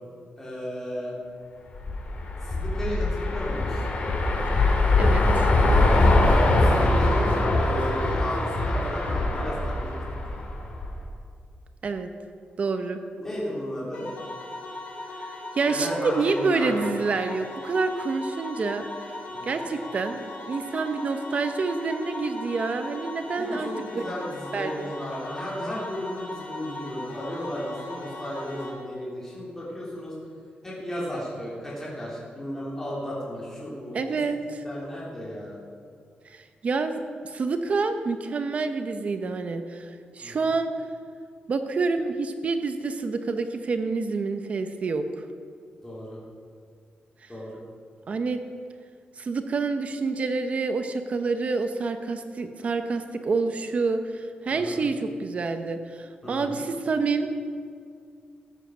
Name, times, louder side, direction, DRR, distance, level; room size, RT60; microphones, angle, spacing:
voice 1, 0.4-1.1 2.4-3.8 6.5-9.9 10.2-10.4 13.2-14.1 15.7-16.9 19.3-19.6 23.3-30.3 30.6-35.6 40.2-40.5 45.8-46.2 47.3-47.6 54.5-54.8 56.2-56.6, equal, 15° left, -7 dB, 3.4 m, -34 dB
sound 1, 1.7-11.0, left 2 dB, 45° left, 2.1 m, -22 dB
voice 2, 5.0-5.5 11.8-12.1 12.6-13.0 15.5-18.8 19.4-23.7 23.9-24.0 24.5-24.9 33.9-34.6 36.3-40.7 41.5-45.0 47.2-47.3 48.1-48.4 49.2-57.3, right 4 dB, 40° right, 8 dB, 0.8 m, -28 dB
sound 2, 13.9-28.7, left 2 dB, 85° left, 3.3 m, -39 dB
14.5 x 8.2 x 6.2 m, 2.2 s
wide cardioid pair, 170°, 3 cm